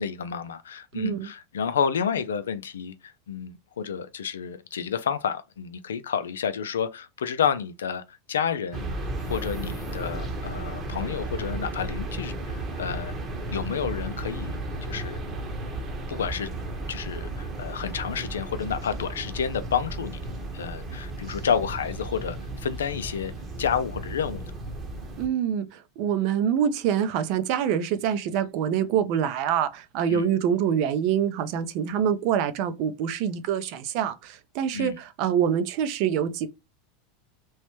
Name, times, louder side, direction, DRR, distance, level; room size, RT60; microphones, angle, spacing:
voice 1, 0.0-8.9 9.3-13.1 13.5-14.5 14.9-15.2 16.1-16.5 16.9-20.2 20.5-23.3 23.6-24.5 30.1-30.3 34.7-35.0, left 7 dB, 90° left, 0.4 m, -30 dB
voice 2, 0.9-1.3 25.2-36.5, right 8 dB, 60° right, 0.5 m, -25 dB
sound 1, 8.7-25.3, right 2 dB, 30° right, 0.9 m, -34 dB
sound 2, 9.1-10.6, right 1 dB, 25° left, 0.6 m, -44 dB
3.1 x 2.1 x 3.0 m
hypercardioid pair, 105°, 0 cm